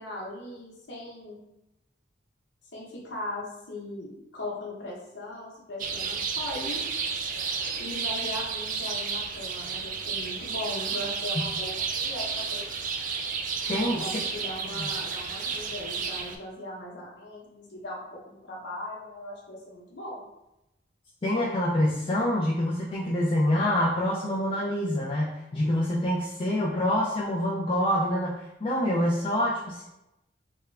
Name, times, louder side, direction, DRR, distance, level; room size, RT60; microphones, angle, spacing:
voice 1, 0.0-1.4 2.7-6.8 7.8-12.7 14.0-20.2, left 1 dB, 85° left, -5 dB, 1.0 m, -39 dB
sound 1, 5.8-16.4, right 5 dB, 45° right, 0.3 m, -32 dB
voice 2, 13.7-14.0 14.7-14.9 21.2-29.8, left 1 dB, 30° left, -6 dB, 0.5 m, -26 dB
3.5 x 2.2 x 3.3 m, 0.89 s
head